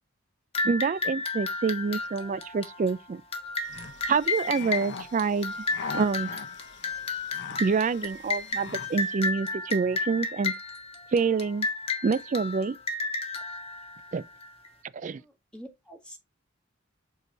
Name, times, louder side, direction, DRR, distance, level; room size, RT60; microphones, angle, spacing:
sound 1, 0.5-14.7, left 3 dB, 30° left, 1.5 m, -33 dB
voice 1, 0.6-3.2 4.1-5.5 5.9-6.3 7.6-10.5 11.1-11.7 12.0-12.8 14.1-14.2 14.9-15.2, right 5 dB, 40° right, 0.4 m, -27 dB
sound 2, 3.6-9.2, left 4 dB, 60° left, 0.9 m, -42 dB
voice 2, 15.0-16.2, equal, 5° left, 1.6 m, -47 dB
6.7 x 4.7 x 3.8 m
head